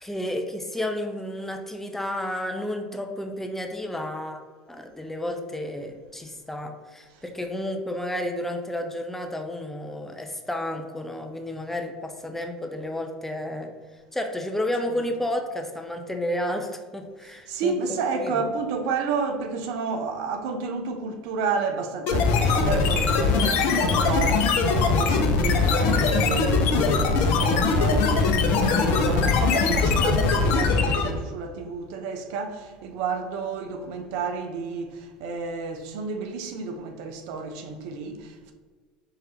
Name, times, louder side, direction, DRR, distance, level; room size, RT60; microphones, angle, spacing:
voice 1, 0.0-4.4 4.7-13.7 14.1-18.5, left 1 dB, 5° left, 0.5 m, -31 dB
voice 2, 17.2-38.5, right 4 dB, 65° right, 0.6 m, -31 dB
sound 1, 22.1-31.2, left 4 dB, 55° left, 0.6 m, -21 dB
4.7 x 3.2 x 2.9 m
hypercardioid pair, 75°, 4 cm